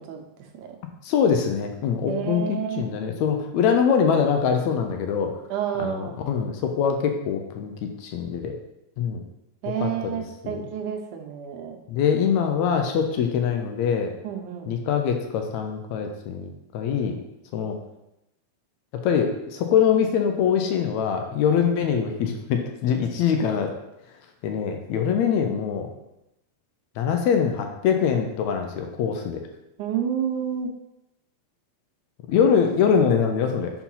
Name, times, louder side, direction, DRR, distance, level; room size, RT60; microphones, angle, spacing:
voice 1, 1.0-5.3 5.8-7.7 8.0-8.6 9.0-9.3 9.8-10.2 10.4-10.7 11.9-14.1 14.7-17.2 17.5-17.8 19.0-23.7 24.4-25.9 27.0-29.4 32.3-33.7, left 7 dB, 80° left, 4 dB, 1.9 m, -23 dB
voice 2, 2.1-2.9 5.5-6.2 9.6-11.8 14.2-14.8 29.8-30.7, right 8 dB, 85° right, 4 dB, 2.3 m, -29 dB
5.6 x 4.6 x 5.6 m, 0.89 s
omnidirectional pair, 3.4 m